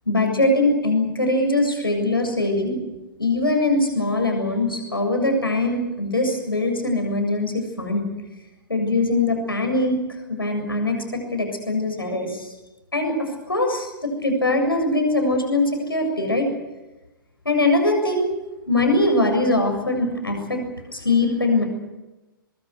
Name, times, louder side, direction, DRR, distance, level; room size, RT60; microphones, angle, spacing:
voice 1, 0.1-2.8 3.2-8.1 8.7-10.0 10.3-12.5 12.9-16.5 17.4-18.3 18.7-20.6 20.9-21.6, left 2 dB, 85° left, 4 dB, 7.3 m, -22 dB
24.0 x 21.5 x 8.2 m, 1.1 s
figure-of-eight pair, 115°, 12 cm